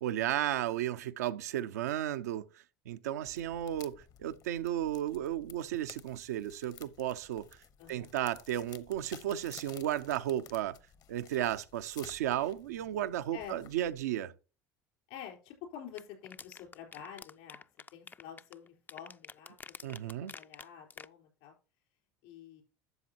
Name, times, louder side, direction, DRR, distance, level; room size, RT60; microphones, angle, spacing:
voice 1, 0.0-2.4 2.9-7.4 7.9-10.8 11.1-14.3 19.8-20.3, right 12 dB, 85° right, 0.6 m, -34 dB
sound 1, 3.2-14.0, left 9 dB, 50° left, 0.9 m, -55 dB
voice 2, 7.8-8.1 13.3-13.6 15.1-17.6 17.9-19.9 20.2-21.5 22.2-22.6, left 9 dB, 75° left, 4.1 m, -48 dB
sound 2, 16.0-21.1, left 5 dB, 20° left, 0.4 m, -48 dB
12.0 x 7.4 x 2.8 m
hypercardioid pair, 80°, 8 cm